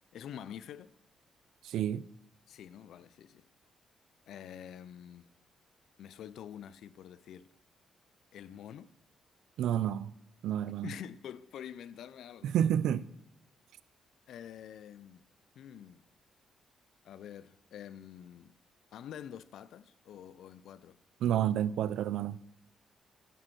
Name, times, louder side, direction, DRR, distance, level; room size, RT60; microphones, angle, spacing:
voice 1, 0.1-0.9 2.5-3.4 4.3-5.3 6.0-7.5 8.3-8.9 10.8-12.7 14.3-15.3 15.6-16.0 17.0-18.5 18.9-21.0, left 9 dB, 65° left, 0.4 m, -47 dB
voice 2, 1.6-2.1 9.6-10.1 10.4-10.9 12.4-13.1 21.2-22.4, right 10 dB, 85° right, 0.4 m, -29 dB
12.5 x 7.6 x 6.2 m
cardioid pair, 175°, 0 cm